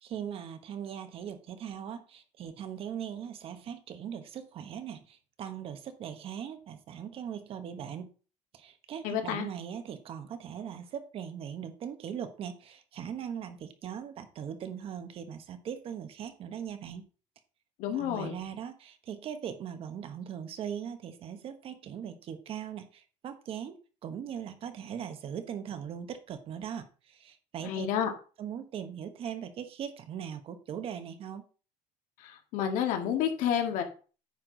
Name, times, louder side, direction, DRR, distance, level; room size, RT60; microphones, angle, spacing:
voice 1, 0.0-8.1 8.5-17.0 17.9-27.9 28.4-31.4, right 8 dB, 40° right, 9 dB, 1.1 m, -40 dB
voice 2, 9.0-9.5 17.8-18.4 27.7-28.1 32.5-33.8, left 9 dB, 70° left, 4 dB, 1.9 m, -29 dB
9.5 x 5.9 x 3.9 m, 0.36 s
cardioid pair, 155°, 14 cm